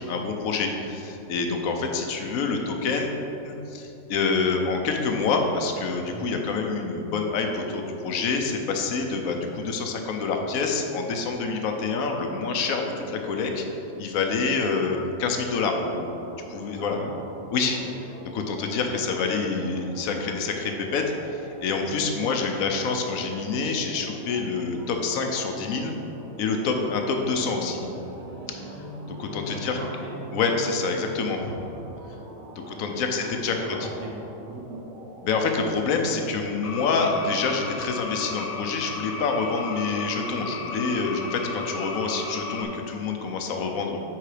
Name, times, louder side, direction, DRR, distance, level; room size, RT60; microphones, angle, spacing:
voice 1, 0.0-3.2 3.4-13.6 14.0-16.1 16.5-17.0 17.5-18.0 18.3-25.9 26.4-27.9 28.5-28.6 29.2-29.8 30.3-31.6 32.7-33.5 35.2-44.0, left 4 dB, 80° left, 3 dB, 1.2 m, -27 dB
voice 2, 6.1-6.4 16.9-17.1 29.5-30.1 32.6-33.3 33.6-34.8, right 1 dB, 65° right, -2 dB, 1.5 m, -40 dB
sound 1, 16.1-35.7, right 2 dB, 85° right, 1.3 m, -45 dB
sound 2, 26.8-31.8, equal, 30° right, 0.8 m, -42 dB
sound 3, 36.6-42.6, left 4 dB, 60° left, 0.9 m, -34 dB
7.6 x 4.8 x 4.9 m, 2.9 s
omnidirectional pair, 1.4 m